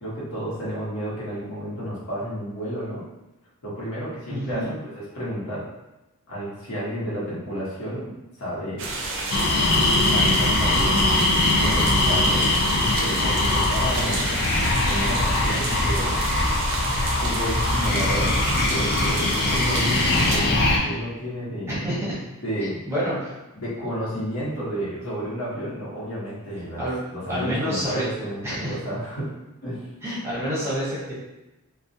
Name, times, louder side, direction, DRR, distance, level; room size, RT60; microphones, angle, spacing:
voice 1, 0.0-3.0 3.6-5.6 6.3-9.0 10.0-11.0 11.6-14.5 14.8-16.2 17.2-20.6 20.8-21.7 22.4-22.8 23.5-29.3 29.6-29.8, equal, 70° left, -8 dB, 1.0 m, -31 dB
voice 2, 4.3-4.7 21.7-22.2 22.9-23.3 26.8-27.0 27.3-28.1 28.4-28.8 30.0-31.1, equal, 10° right, -8 dB, 0.6 m, -28 dB
sound 1, 8.8-20.4, right 2 dB, 60° right, 0.4 m, -30 dB
sound 2, 9.3-20.8, left 2 dB, 45° left, 0.4 m, -22 dB
2.3 x 2.1 x 2.6 m, 1.0 s
head